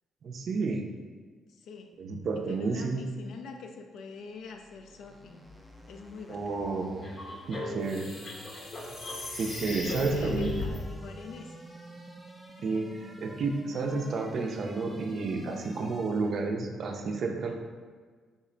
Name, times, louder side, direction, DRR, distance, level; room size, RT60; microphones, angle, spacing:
voice 1, 0.2-0.9 2.0-3.0 6.3-7.1 7.5-8.1 9.4-10.5 12.6-17.5, right 3 dB, 60° right, 3 dB, 0.4 m, -31 dB
voice 2, 1.5-1.9 2.3-5.4 5.9-6.7 8.3-8.4 9.9-11.6, left 4 dB, 75° left, 5 dB, 0.3 m, -45 dB
sound 1, 4.3-16.5, equal, 5° left, 0.4 m, -49 dB
sound 2, 7.0-10.8, left 2 dB, 45° left, 0.7 m, -36 dB
3.6 x 2.1 x 3.8 m, 1.5 s
cardioid pair, 90°, 0 cm